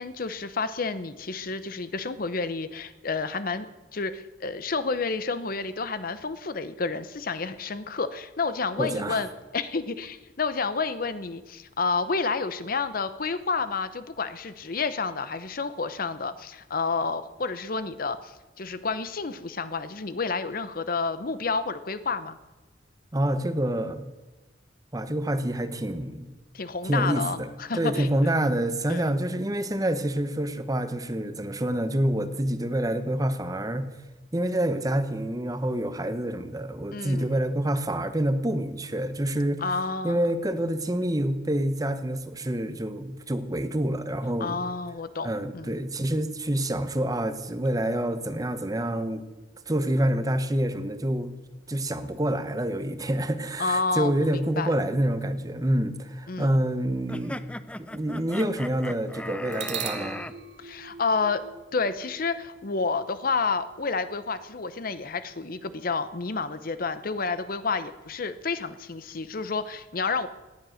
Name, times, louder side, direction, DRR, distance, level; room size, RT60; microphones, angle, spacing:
voice 1, 0.0-22.4 26.5-28.3 28.9-29.1 36.9-37.3 39.6-40.2 44.4-45.7 53.6-54.7 56.3-56.6 60.6-61.4 61.7-70.3, left 4 dB, 50° left, 13 dB, 0.8 m, -30 dB
voice 2, 8.8-9.2 23.1-24.0 24.9-26.3 26.8-27.5 27.7-33.9 34.3-39.6 40.0-44.6 45.2-49.2 49.7-51.3 51.7-57.5 57.8-60.2, right 1 dB, 20° right, 11 dB, 0.9 m, -27 dB
sound 1, 49.4-51.9 59.5-67.4, right 8 dB, 65° right, 1.0 m, -44 dB
sound 2, 57.1-60.3, left 1 dB, 5° left, 0.4 m, -37 dB
18.0 x 10.5 x 6.4 m, 1.1 s
head